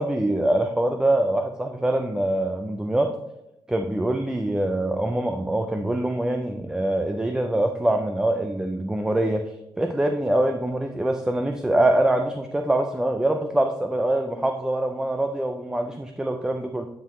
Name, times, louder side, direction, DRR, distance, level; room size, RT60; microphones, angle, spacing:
voice 1, 0.0-3.1 3.7-16.9, right 1 dB, 5° right, 5 dB, 0.4 m, -24 dB
11.5 x 5.7 x 3.1 m, 0.91 s
wide cardioid pair, 140°, 9 cm